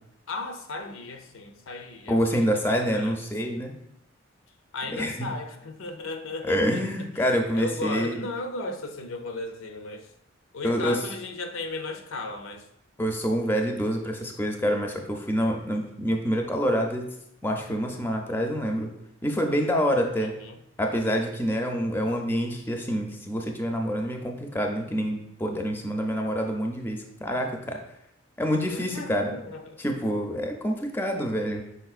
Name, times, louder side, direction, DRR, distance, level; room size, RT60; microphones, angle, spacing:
voice 1, 0.3-3.2 3.4-3.6 4.7-10.1 10.5-12.7 20.2-20.6 28.7-29.8, left 3 dB, 85° left, 6 dB, 0.6 m, -36 dB
voice 2, 2.1-3.8 4.9-5.3 6.4-8.2 10.6-11.0 13.0-17.1 17.4-18.9 19.2-20.3 20.8-27.8 28.4-29.3 29.8-31.6, equal, 10° left, 2 dB, 0.4 m, -27 dB
5.6 x 4.0 x 2.4 m, 0.82 s
head